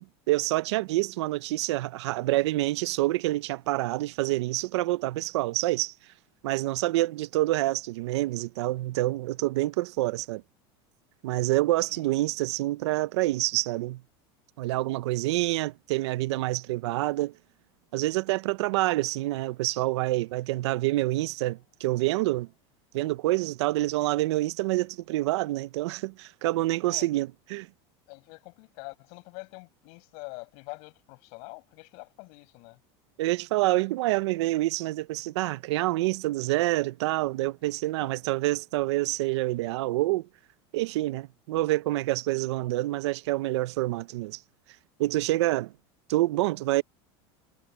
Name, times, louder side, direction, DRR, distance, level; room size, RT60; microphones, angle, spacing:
voice 1, 0.0-5.9 6.4-10.4 11.2-14.0 14.6-17.3 17.9-22.5 22.9-27.7 33.2-40.3 40.7-44.4 45.0-45.7 46.1-46.8, right 18 dB, 90° right, 0.6 m, -27 dB
voice 2, 28.1-32.8 37.6-37.7 38.0-38.1, left 33 dB, 50° left, 6.7 m, -45 dB
supercardioid pair, 175°, 14 cm